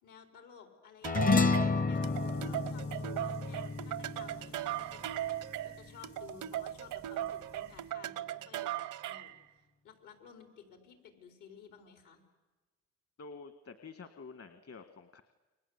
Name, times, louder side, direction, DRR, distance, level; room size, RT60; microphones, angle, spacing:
voice 1, 0.0-5.1 5.4-12.2, left 6 dB, 85° left, 5 dB, 5.0 m, -55 dB
sound 1, 1.0-5.7, left 4 dB, 30° left, 0.8 m, -31 dB
sound 2, 1.0-9.4, right 13 dB, 85° right, 0.9 m, -38 dB
sound 3, 2.0-7.9, left 7 dB, 65° left, 5.4 m, -63 dB
voice 2, 13.2-15.2, left 4 dB, 50° left, 9 dB, 1.8 m, -49 dB
29.0 x 24.0 x 8.3 m, 1.2 s
cardioid pair, 90°, 30 cm